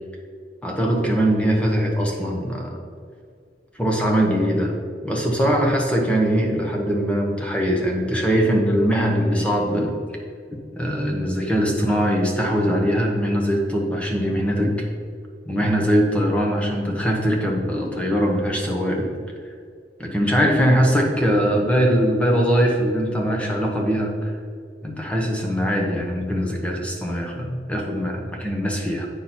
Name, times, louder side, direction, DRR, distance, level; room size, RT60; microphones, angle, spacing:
voice 1, 0.6-2.7 3.7-4.7 5.0-9.9 10.8-14.9 15.5-19.1 20.0-24.3 24.8-29.1, equal, 5° left, 0 dB, 1.1 m, -21 dB
8.5 x 6.0 x 4.3 m, 2.2 s
head